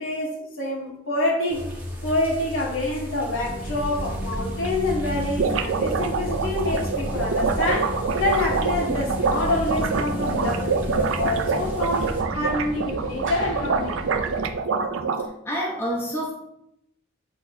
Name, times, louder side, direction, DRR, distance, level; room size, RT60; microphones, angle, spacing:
voice 1, 0.0-1.7 2.0-14.0, left 1 dB, 75° left, -2 dB, 1.7 m, -27 dB
sound 1, 1.5-12.2, equal, 10° right, 1.2 m, -35 dB
sound 2, 3.3-14.5, equal, 35° right, 1.8 m, -33 dB
sound 3, 4.0-4.1 4.3-4.4 4.6-4.7 5.0-15.3, right 5 dB, 70° right, 0.4 m, -26 dB
voice 2, 15.4-16.3, equal, 10° left, -3 dB, 0.9 m, -27 dB
8.4 x 4.1 x 2.7 m, 0.80 s
head